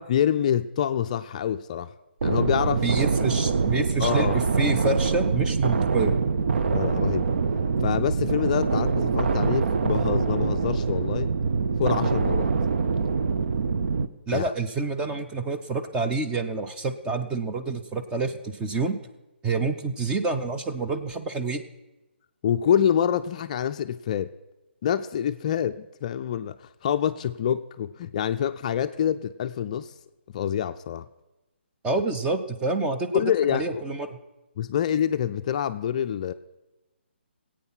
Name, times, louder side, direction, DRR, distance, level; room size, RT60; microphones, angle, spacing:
voice 1, 0.0-1.9 2.2-2.8 4.0-4.4 6.7-7.3 7.8-11.3 11.8-12.5 14.3-14.4 22.4-24.3 24.8-29.9 30.3-31.1 33.1-33.8 34.6-36.3, left 9 dB, 35° left, 9 dB, 0.4 m, -26 dB
sound 1, 2.2-14.1, right 5 dB, 60° right, 0.8 m, -24 dB
voice 2, 2.8-6.1 14.3-19.0 19.4-21.6 31.8-34.2, right 3 dB, 10° right, 5 dB, 0.8 m, -28 dB
18.0 x 8.7 x 5.7 m, 1.0 s
figure-of-eight pair, 145°, 6 cm